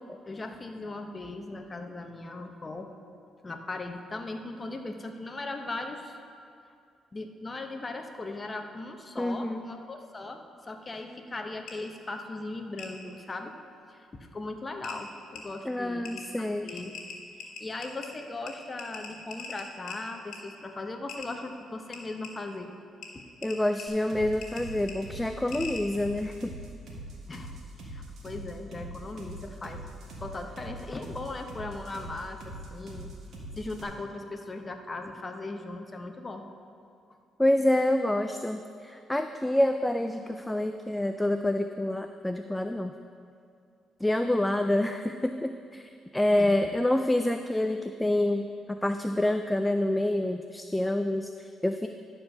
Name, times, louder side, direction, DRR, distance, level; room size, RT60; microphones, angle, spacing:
voice 1, 0.3-2.9 3.4-6.2 7.1-13.5 13.9-17.0 17.6-22.7 23.1-23.2 27.3-27.5 27.8-29.8 30.2-33.1 33.6-36.5 46.4-46.7, left 2 dB, 25° left, 5 dB, 0.9 m, -38 dB
voice 2, 9.2-9.6 15.7-16.7 23.4-26.5 37.4-42.9 44.0-51.9, left 1 dB, 10° left, 7 dB, 0.3 m, -27 dB
sound 1, 11.7-11.8 12.8-12.9 14.3-14.4 14.8-15.0 15.4-15.5 16.0-16.2 16.7-18.1 18.5-18.6 18.8-20.0 20.3-20.4 21.1-21.3 21.9-22.3 23.0-23.1 23.4-23.8 24.4-24.6 24.9-25.0 25.5-25.8, left 6 dB, 80° left, 1.5 m, -40 dB
sound 2, 23.9-33.8, right 1 dB, 65° right, 1.8 m, -42 dB
11.5 x 4.5 x 6.5 m, 2.4 s
cardioid pair, 90°, 0 cm